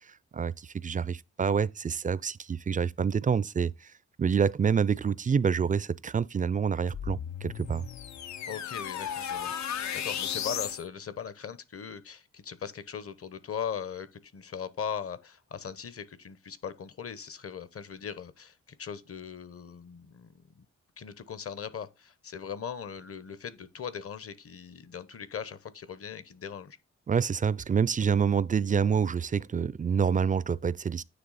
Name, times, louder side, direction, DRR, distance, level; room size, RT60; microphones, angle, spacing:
voice 1, 0.3-3.9 4.2-7.8 27.1-31.0, right 6 dB, 30° right, 0.3 m, -27 dB
sound 1, 6.9-10.8, left 9 dB, 70° left, 0.6 m, -35 dB
voice 2, 8.5-20.7 21.0-26.8, left 7 dB, 50° left, 0.9 m, -39 dB
9.4 x 3.3 x 4.1 m
cardioid pair, 70°, 29 cm